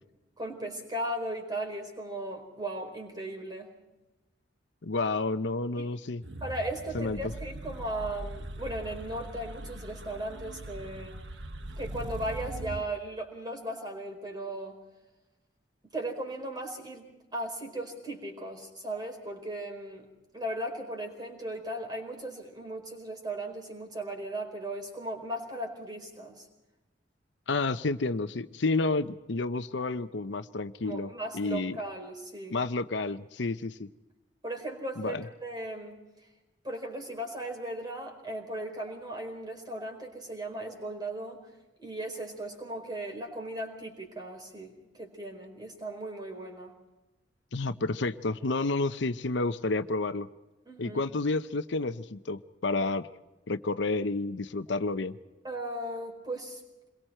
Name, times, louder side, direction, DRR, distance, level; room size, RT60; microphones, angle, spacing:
voice 1, 0.4-3.7 5.8-6.0 6.4-11.2 11.8-14.8 15.9-20.1 20.3-26.5 30.8-32.6 34.4-36.0 36.6-41.4 41.8-46.7 50.6-51.0 55.4-56.6, right 1 dB, 25° right, 2 dB, 4.7 m, -37 dB
voice 2, 4.8-6.2 6.9-7.2 27.5-31.8 32.5-33.9 35.0-35.2 47.5-50.3 50.8-53.1 53.5-55.2, left 3 dB, 75° left, 11 dB, 0.8 m, -30 dB
sound 1, 6.2-12.8, right 1 dB, 75° right, 1.2 m, -41 dB
27.5 x 22.5 x 4.5 m, 1.0 s
head